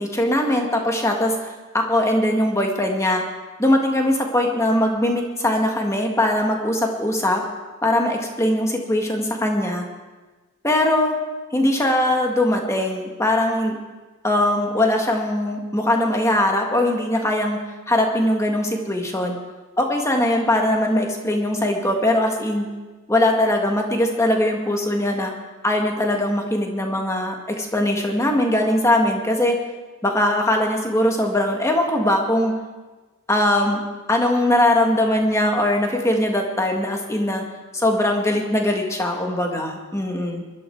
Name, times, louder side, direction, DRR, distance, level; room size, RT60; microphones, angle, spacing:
voice 1, 0.0-3.2 3.6-7.4 7.8-9.8 10.6-11.2 11.5-13.8 14.2-17.6 17.9-19.4 19.8-22.7 23.1-25.3 25.6-29.6 30.0-32.5 33.3-33.8 34.1-37.4 37.7-40.4, left 1 dB, 15° left, 2 dB, 1.7 m, -21 dB
20.5 x 12.5 x 4.6 m, 1.2 s
head